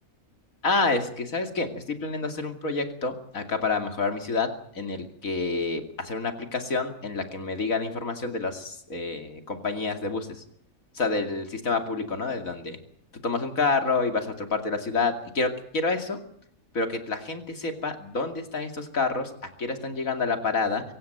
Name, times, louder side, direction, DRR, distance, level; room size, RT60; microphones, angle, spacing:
voice 1, 0.6-4.5 4.7-10.3 10.9-12.8 13.1-16.2 16.7-19.3 19.6-20.8, left 3 dB, 70° left, 6 dB, 3.0 m, -28 dB
25.0 x 15.5 x 9.2 m, 0.64 s
omnidirectional pair, 1.5 m